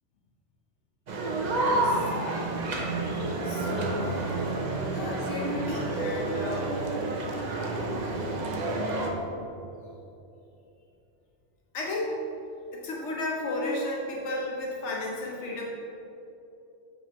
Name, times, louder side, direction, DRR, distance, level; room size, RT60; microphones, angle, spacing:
sound 1, 1.1-9.1, right 2 dB, 45° right, 0.7 m, -29 dB
voice 1, 1.7-2.1 2.9-4.2 4.9-6.7 11.7-12.1 12.7-15.7, left 2 dB, 80° left, -2 dB, 1.1 m, -34 dB
7.3 x 5.4 x 3.0 m, 2.8 s
omnidirectional pair, 1.2 m